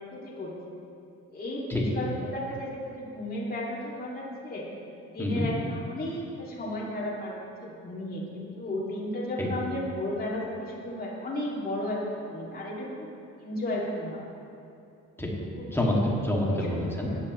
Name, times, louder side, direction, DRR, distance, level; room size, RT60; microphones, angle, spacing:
voice 1, 0.1-0.5 1.3-4.7 5.0-7.3 7.6-13.1 13.4-14.2 15.6-15.8 16.5-16.7 17.0-17.2, left 1 dB, 30° left, -6 dB, 2.5 m, -34 dB
voice 2, 15.7-17.1, left 1 dB, 10° left, -4 dB, 2.3 m, -27 dB
15.0 x 10.5 x 3.2 m, 2.7 s
cardioid pair, 90°, 30 cm